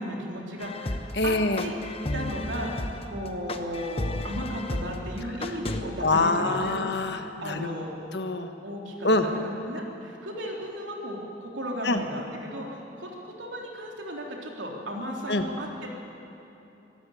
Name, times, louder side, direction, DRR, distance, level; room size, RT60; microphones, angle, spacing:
voice 1, 0.0-1.4 1.6-1.7 2.1-6.8 7.4-7.9 8.6-15.9, equal, 90° right, -1 dB, 3.7 m, -35 dB
sound 1, 0.6-5.8, left 2 dB, 30° left, 1.0 m, -33 dB
voice 2, 1.1-1.7 6.0-7.7 8.1-8.5 9.0-9.3 11.8-12.0 15.3-15.4, left 2 dB, 65° left, 7 dB, 1.4 m, -25 dB
23.5 x 13.5 x 9.6 m, 2.9 s
head